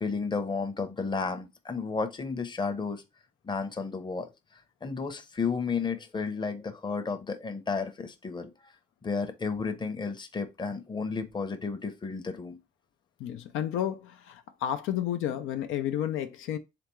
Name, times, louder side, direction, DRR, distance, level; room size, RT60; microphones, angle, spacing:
voice 1, 0.0-3.0 3.4-4.3 4.8-8.5 9.0-12.6, left 4 dB, 20° left, 0.7 m, -32 dB
voice 2, 13.2-16.6, left 10 dB, 85° left, 0.5 m, -31 dB
3.6 x 3.4 x 3.1 m
cardioid pair, 90°, 20 cm